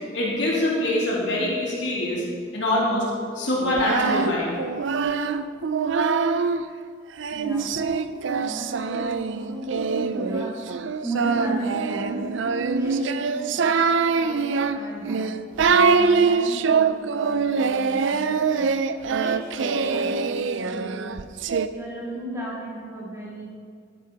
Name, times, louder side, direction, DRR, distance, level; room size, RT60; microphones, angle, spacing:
voice 1, 0.1-2.2 2.5-3.0 3.3-4.5, left 1 dB, 60° left, -5 dB, 3.0 m, -24 dB
Singing, 3.6-6.6 7.2-21.7, right 5 dB, 65° right, 0.5 m, -24 dB
voice 2, 7.3-7.8 8.3-10.6 11.0-12.3 12.7-15.3 15.6-18.7 19.2-21.3 21.7-23.5, right 1 dB, 15° right, -6 dB, 2.6 m, -35 dB
13.0 x 10.0 x 4.0 m, 2.2 s
head